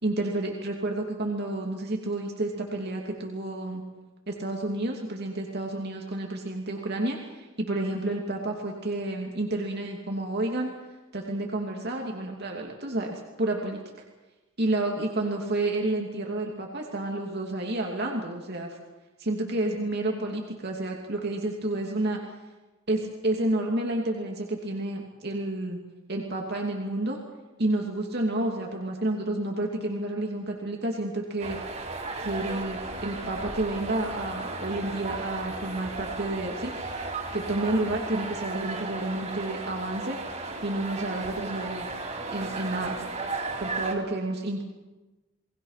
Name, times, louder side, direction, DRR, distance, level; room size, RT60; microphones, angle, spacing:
voice 1, 0.0-3.8 4.3-10.7 11.1-13.8 14.6-18.8 19.2-22.2 22.9-25.8 26.1-27.2 27.6-31.6 32.2-36.7 37.3-40.2 40.6-41.9 42.3-43.0 43.6-44.6, right 2 dB, 50° right, 0 dB, 2.7 m, -30 dB
sound 1, 31.4-43.9, right 3 dB, 35° right, 3.8 m, -35 dB
29.0 x 20.0 x 5.8 m, 1.1 s
head